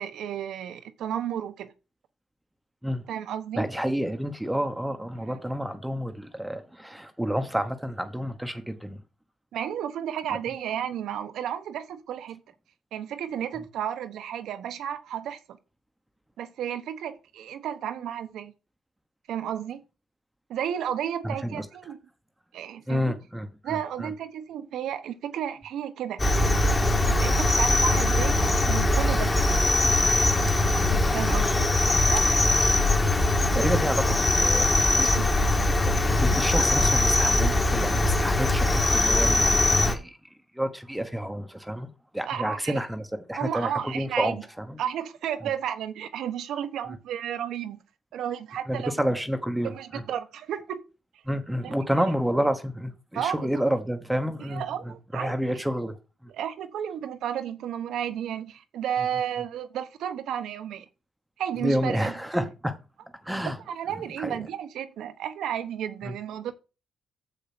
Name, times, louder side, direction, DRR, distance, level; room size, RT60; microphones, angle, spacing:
voice 1, 0.0-1.7 3.1-3.7 9.5-12.4 12.9-15.6 16.4-18.5 19.3-19.8 20.5-22.0 22.5-23.1 23.6-26.2 27.0-29.3 31.1-32.2 35.0-35.3 42.3-42.8 43.4-44.4 44.8-47.8 48.1-48.9 49.6-50.8 51.6-51.8 53.1-53.6 54.4-55.6 56.3-60.8 61.4-62.1 63.7-66.5, right 9 dB, 80° right, 1.1 m, -32 dB
voice 2, 3.5-9.0 21.2-21.6 22.9-24.1 30.3-30.5 33.5-34.7 35.8-40.2 40.5-44.8 48.7-50.0 51.3-56.0 61.6-62.7 63.2-63.6 64.2-64.4 66.0-66.2, equal, 5° right, 1.1 m, -29 dB
Cricket, 26.2-39.9, left 2 dB, 25° left, 2.1 m, -22 dB
7.2 x 6.7 x 6.1 m
cardioid pair, 90°, 0 cm